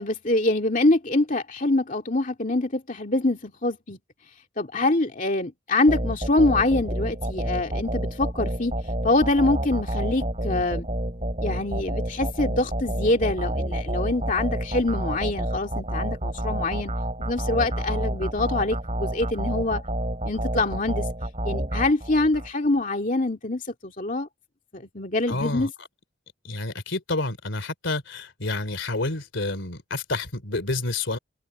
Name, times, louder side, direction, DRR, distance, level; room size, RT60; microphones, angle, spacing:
voice 1, 0.0-4.0 4.6-8.7 9.0-10.9 11.4-16.9 17.3-19.8 20.2-21.0 21.4-24.3 24.7-25.7, left 2 dB, 40° left, 2.3 m, -25 dB
sound 1, 5.9-22.5, right 1 dB, 30° right, 6.8 m, -29 dB
voice 2, 25.3-25.7 26.4-31.2, left 2 dB, 70° left, 3.1 m, -29 dB
head